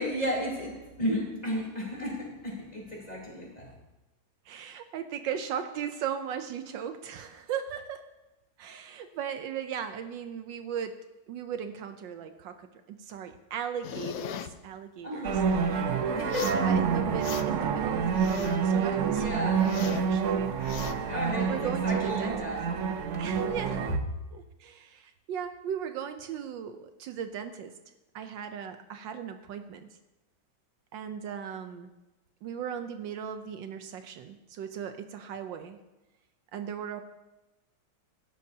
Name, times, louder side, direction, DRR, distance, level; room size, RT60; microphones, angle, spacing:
voice 1, 0.0-3.7 15.0-15.6 16.1-16.5 19.1-19.6 21.0-22.6 23.2-23.8, left 1 dB, 20° left, -4 dB, 4.0 m, -34 dB
voice 2, 4.5-8.1 8.6-11.0 11.3-15.4 16.4-20.6 21.1-22.6 23.2-23.8 24.3-27.7 28.1-29.9 30.9-31.9 32.4-35.8 36.5-37.0, right 8 dB, 75° right, 8 dB, 1.3 m, -37 dB
sound 1, 13.8-14.5 16.2-16.7 17.0-17.7 18.0-18.7 19.1-20.1 20.5-21.0, left 10 dB, 75° left, 0.8 m, -39 dB
sound 2, 15.2-24.0, right 6 dB, 55° right, 0.8 m, -28 dB
16.5 x 12.0 x 2.8 m, 1.0 s
omnidirectional pair, 2.1 m